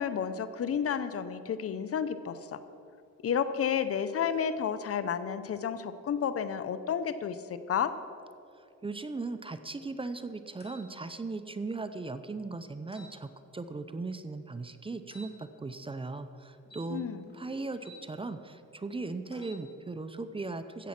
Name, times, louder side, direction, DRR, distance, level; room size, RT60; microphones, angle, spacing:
voice 1, 0.0-2.6 3.2-7.9 16.9-17.3, left 7 dB, 50° left, 12 dB, 0.7 m, -31 dB
voice 2, 8.8-17.0 17.3-20.9, right 3 dB, 20° right, 11 dB, 0.6 m, -38 dB
sound 1, 10.6-10.9 12.9-13.1 15.1-15.3 16.6-18.0 19.3-19.6, equal, 35° left, 2.2 m, -52 dB
14.5 x 8.3 x 5.9 m, 2.6 s
cardioid pair, 90°, 30 cm